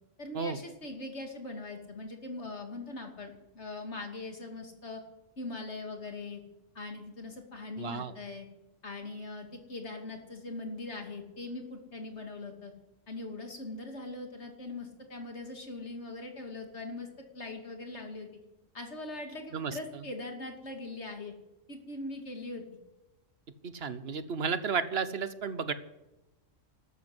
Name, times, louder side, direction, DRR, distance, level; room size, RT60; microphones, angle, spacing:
voice 1, 0.2-5.0 5.4-6.4 6.7-8.5 8.8-12.7 13.1-17.1 17.3-18.3 18.7-21.3 21.7-22.6, left 2 dB, 60° left, 3 dB, 2.9 m, -41 dB
voice 2, 7.8-8.1 19.5-20.0 23.6-25.7, right 5 dB, 55° right, 12 dB, 1.3 m, -33 dB
13.0 x 13.0 x 8.0 m, 1.0 s
omnidirectional pair, 1.3 m